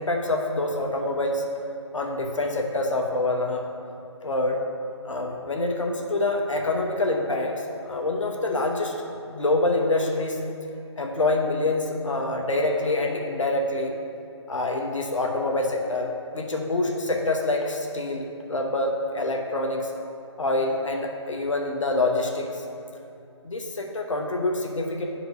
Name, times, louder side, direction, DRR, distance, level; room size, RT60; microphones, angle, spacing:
voice 1, 0.0-1.4 1.9-3.6 4.2-4.6 5.0-8.9 9.3-10.4 11.0-13.9 14.5-19.9 20.4-22.6 23.4-25.0, left 2 dB, 80° left, 0 dB, 0.9 m, -26 dB
11.5 x 4.6 x 2.6 m, 2.8 s
figure-of-eight pair, 150°, 16 cm